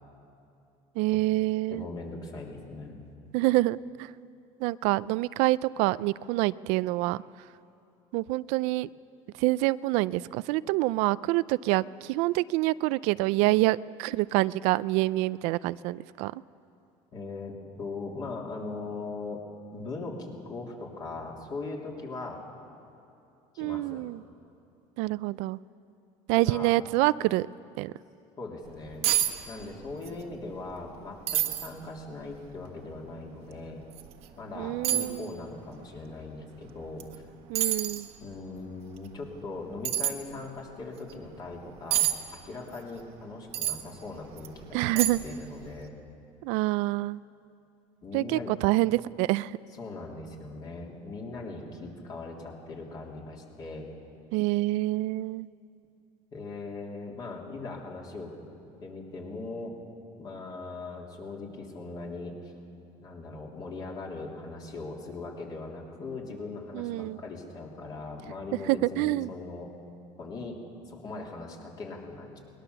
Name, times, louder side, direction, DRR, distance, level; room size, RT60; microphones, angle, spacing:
voice 1, 1.0-1.8 3.3-4.1 4.6-7.2 8.1-8.9 9.4-16.4 23.6-24.2 25.0-25.6 26.3-27.5 27.8-27.9 34.6-35.3 37.5-38.1 44.7-45.2 46.4-47.2 48.1-49.5 54.3-55.5 66.7-67.2 68.7-69.3, right 19 dB, 80° right, 17 dB, 0.4 m, -26 dB
voice 2, 1.7-3.0 17.1-19.4 19.7-22.4 23.5-24.0 26.3-26.7 28.4-29.1 29.5-33.8 34.4-37.2 38.2-42.1 42.4-45.9 48.0-48.5 49.8-53.9 56.3-58.3 58.8-59.7 60.2-62.5 63.0-69.7 70.2-70.6 70.8-72.4, left 3 dB, 35° left, -1 dB, 3.4 m, -40 dB
sound 1, 28.7-28.8 29.0-29.3 29.6-30.2 30.5-30.6 31.3-31.7 32.3-32.4 33.9-34.1 34.8-35.1 37.0-37.2 37.6-38.1 39.8-40.1 41.9-42.1 43.5-43.8 44.4-44.5 45.0-45.4 45.7-45.8, right 12 dB, 65° right, 1.4 m, -27 dB
22.0 x 20.0 x 6.9 m, 2.7 s
cardioid pair, 145°, 11 cm